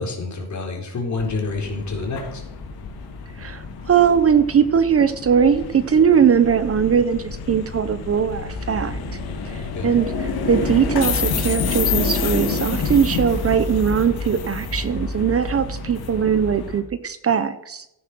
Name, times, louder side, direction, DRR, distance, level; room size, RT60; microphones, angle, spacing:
voice 1, 0.0-2.4 9.7-9.9, left 3 dB, 50° left, 0 dB, 4.5 m, -28 dB
sound 1, 1.2-16.8, left 4 dB, 75° left, 2.8 m, -28 dB
voice 2, 3.4-9.0 9.5-17.9, right 7 dB, 40° right, 13 dB, 0.8 m, -20 dB
15.5 x 9.6 x 6.2 m, 0.85 s
cardioid pair, 135°, 37 cm